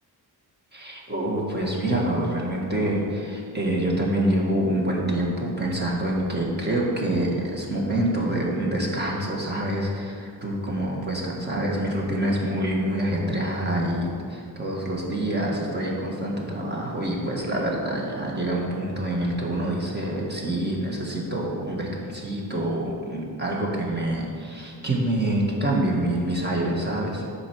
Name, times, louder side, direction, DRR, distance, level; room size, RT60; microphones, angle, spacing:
voice 1, 0.7-27.3, right 1 dB, 25° right, -2 dB, 1.8 m, -26 dB
10.0 x 4.5 x 6.2 m, 2.3 s
wide cardioid pair, 115°, 39 cm